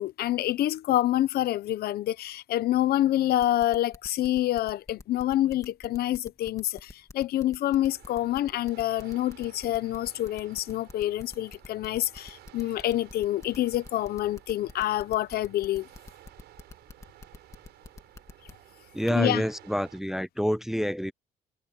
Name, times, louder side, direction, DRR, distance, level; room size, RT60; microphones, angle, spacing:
voice 1, 0.0-15.9 19.1-19.4, left 13 dB, 65° left, 0.9 m, -27 dB
sound 1, 3.4-18.5, left 3 dB, 20° left, 2.5 m, -46 dB
sound 2, 7.7-20.0, right 15 dB, 80° right, 7.9 m, -54 dB
voice 2, 18.9-21.1, equal, ahead, 0.5 m, -27 dB
cardioid pair, 110°, 17 cm